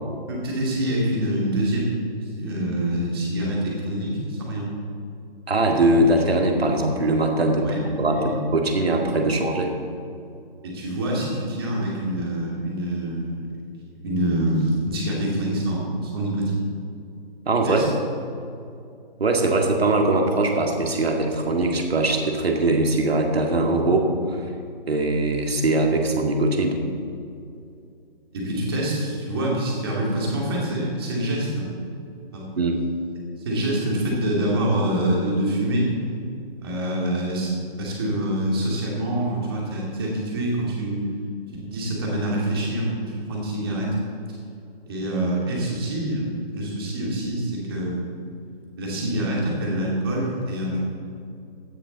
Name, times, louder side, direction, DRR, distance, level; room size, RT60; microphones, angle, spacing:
voice 1, 0.3-4.7 7.6-7.8 8.1-8.3 10.6-13.5 14.0-16.6 17.6-17.9 28.3-31.7 32.3-32.5 33.4-35.9 36.6-41.0 41.6-44.0 44.3-44.4 44.9-48.1 48.8-50.8, right 1 dB, 25° right, -3 dB, 2.6 m, -26 dB
voice 2, 5.5-9.7 17.5-17.8 19.2-24.5 24.9-26.8 32.6-32.8, right 2 dB, 80° right, 2 dB, 2.2 m, -21 dB
17.0 x 9.7 x 4.1 m, 2.5 s
hypercardioid pair, 175°, 30 cm